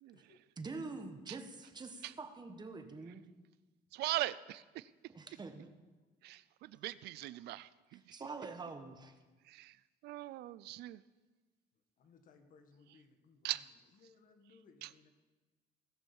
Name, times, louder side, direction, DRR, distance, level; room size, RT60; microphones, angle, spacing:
voice 1, 0.6-3.2 5.1-5.7 7.9-9.1, right 3 dB, 25° right, 7 dB, 1.4 m, -46 dB
voice 2, 3.9-4.9 6.2-8.2 9.5-9.8 10.0-11.0 13.4-13.6 14.8-14.9, right 16 dB, 75° right, 18 dB, 0.4 m, -40 dB
voice 3, 12.0-13.7 13.9-15.1, left 4 dB, 55° left, 6 dB, 1.7 m, -64 dB
18.0 x 6.3 x 7.1 m, 1.2 s
cardioid pair, 110°, 17 cm